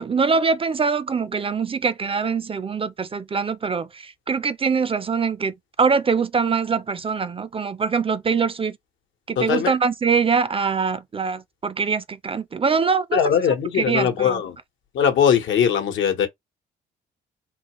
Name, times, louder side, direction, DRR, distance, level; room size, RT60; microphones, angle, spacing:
voice 1, 0.0-8.8 9.3-13.2 13.8-14.4, right 5 dB, 30° right, 0.4 m, -23 dB
voice 2, 9.4-9.7 13.1-14.6 14.9-16.3, left 8 dB, 75° left, 1.0 m, -20 dB
3.8 x 2.4 x 3.0 m
cardioid pair, 90°, 20 cm